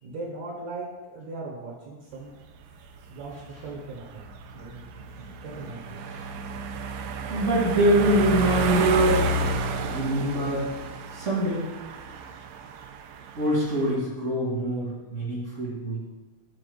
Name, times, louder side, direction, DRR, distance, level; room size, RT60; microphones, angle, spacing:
voice 1, 0.0-2.3 2.6-2.8 3.1-4.9 5.4-6.0, right 2 dB, 65° right, -2 dB, 2.1 m, -39 dB
sound 1, 2.2-13.9, right 4 dB, 80° right, 2.3 m, -32 dB
voice 2, 7.3-9.3 9.8-10.7 11.1-11.7 13.3-16.0, equal, 35° right, -5 dB, 1.3 m, -24 dB
7.7 x 4.2 x 6.9 m, 1.2 s
omnidirectional pair, 4.2 m